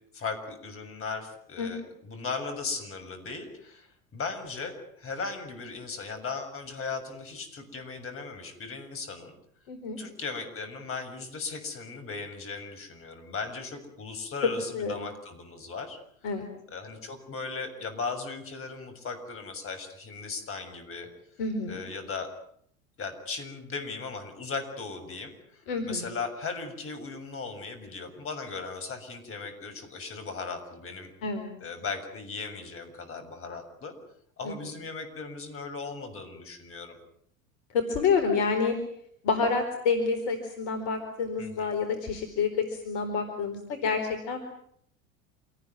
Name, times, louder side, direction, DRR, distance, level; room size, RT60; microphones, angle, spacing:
voice 1, 0.1-9.3 10.0-16.0 16.7-21.1 21.7-22.3 23.0-31.1 31.6-33.9 34.4-37.0 41.4-41.7, left 4 dB, 35° left, 7 dB, 7.0 m, -37 dB
voice 2, 9.7-10.0 14.4-15.0 16.2-16.5 21.4-21.8 25.7-26.1 31.2-31.5 34.4-34.6 37.7-38.7 39.2-44.4, left 5 dB, 55° left, 7 dB, 4.4 m, -28 dB
28.0 x 19.0 x 9.6 m, 0.68 s
figure-of-eight pair, 75°, 40 cm